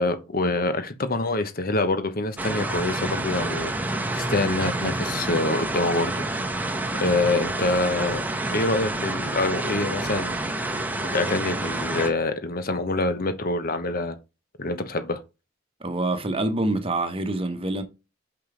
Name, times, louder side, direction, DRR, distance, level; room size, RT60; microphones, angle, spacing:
voice 1, 0.0-3.7 4.1-6.3 7.0-8.2 8.5-10.4 11.1-14.1 14.6-15.2, left 2 dB, 45° left, 1.1 m, -25 dB
sound 1, 2.4-12.1, right 2 dB, 10° right, 1.1 m, -28 dB
voice 2, 15.8-17.8, right 2 dB, 30° right, 1.2 m, -26 dB
6.0 x 5.6 x 5.0 m
head